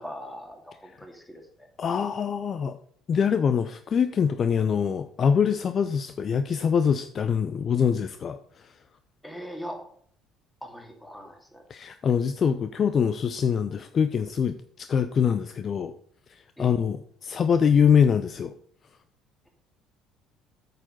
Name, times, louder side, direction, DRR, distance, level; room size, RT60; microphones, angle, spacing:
voice 1, 0.0-1.7 9.2-9.8 10.6-11.6 16.6-16.7, equal, 5° left, 2 dB, 2.9 m, -41 dB
voice 2, 1.8-2.8 3.1-8.7 11.7-15.9 16.6-18.5, left 7 dB, 40° left, 11 dB, 0.6 m, -24 dB
8.8 x 6.8 x 5.5 m, 0.63 s
figure-of-eight pair, 55°, 0 cm